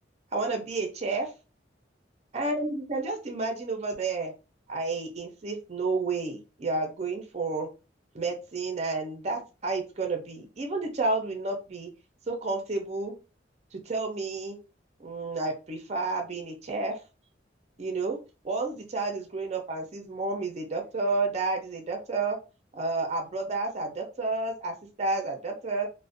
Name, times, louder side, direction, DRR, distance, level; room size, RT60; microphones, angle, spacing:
voice 1, 0.3-1.3 2.3-4.3 4.7-7.7 8.1-11.9 12.3-13.1 13.7-14.6 15.0-17.0 17.8-18.2 18.4-22.4 22.7-25.9, right 3 dB, 35° right, 3 dB, 0.5 m, -31 dB
2.4 x 2.1 x 2.4 m, 0.31 s
head